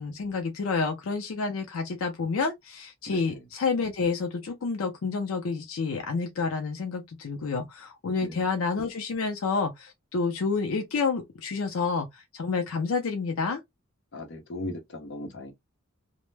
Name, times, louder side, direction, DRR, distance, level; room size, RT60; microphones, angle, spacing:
voice 1, 0.0-13.6, left 4 dB, 85° left, 0.5 m, -29 dB
voice 2, 3.1-3.4 8.2-8.4 14.1-15.5, left 1 dB, 60° left, 0.8 m, -37 dB
2.1 x 2.1 x 3.1 m
head